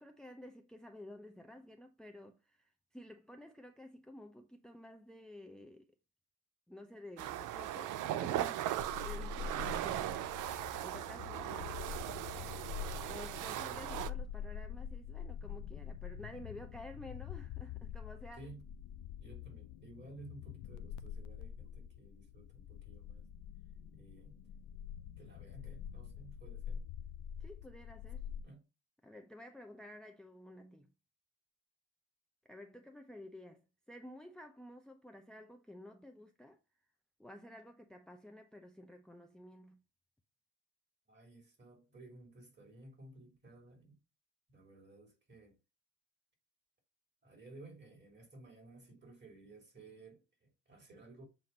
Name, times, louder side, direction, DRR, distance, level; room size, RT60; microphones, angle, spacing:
voice 1, 0.0-5.9 6.7-10.4 10.8-12.1 13.1-18.4 27.4-28.3 29.0-30.9 32.4-33.6 33.9-36.6 37.2-39.8, left 1 dB, ahead, 0.6 m, -52 dB
sound 1, 7.2-14.1, right 13 dB, 90° right, 0.6 m, -38 dB
sound 2, 8.8-28.4, left 8 dB, 85° left, 0.6 m, -46 dB
voice 2, 18.4-18.7 19.2-23.3 23.9-24.4 25.2-26.9 28.4-28.7 41.1-44.0 44.5-45.6 47.2-51.3, right 2 dB, 35° right, 3.3 m, -56 dB
7.6 x 2.7 x 5.3 m
cardioid pair, 90°, 30 cm